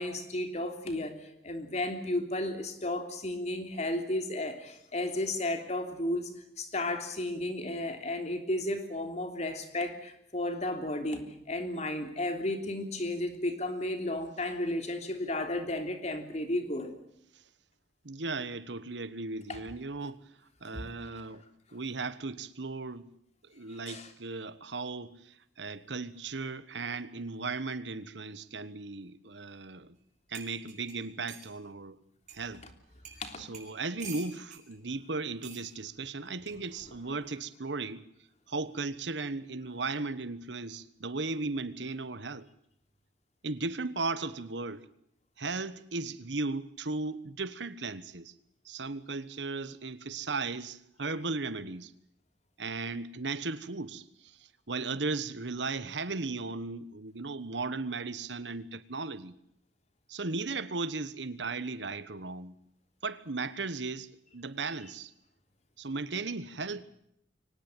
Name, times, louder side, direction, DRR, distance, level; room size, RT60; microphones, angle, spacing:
voice 1, 0.0-6.3 6.6-17.0 19.5-19.6 20.7-20.9 23.9-24.1 33.2-33.5, left 1 dB, 40° left, 3.4 m, -33 dB
voice 2, 18.0-20.2 20.6-21.4 21.7-23.1 23.5-30.0 30.3-32.0 32.3-32.6 33.4-38.0 38.5-42.5 43.4-44.8 45.4-48.3 48.6-51.9 52.6-54.3 54.7-59.3 60.1-62.5 63.0-64.1 64.3-65.1 65.8-66.8, right 3 dB, 80° right, 1.3 m, -36 dB
Spoon in coffee cup, 30.0-30.1 30.3-31.5 32.3-32.4 33.0-33.2 33.5-34.6 35.4-35.7 36.8-37.0, right 6 dB, 45° right, 6.1 m, -46 dB
24.0 x 19.0 x 9.1 m
head